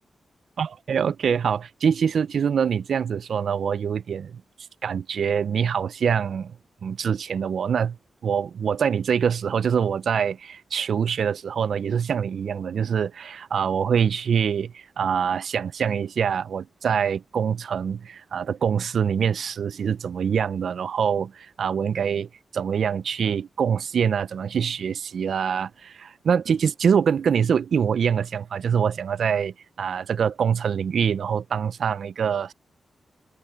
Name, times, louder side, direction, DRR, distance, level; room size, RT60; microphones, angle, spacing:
voice 1, 0.6-4.4 4.8-6.5 6.8-8.0 8.2-32.5, right 7 dB, 75° right, 0.4 m, -24 dB
cardioid pair, 60°, 0 cm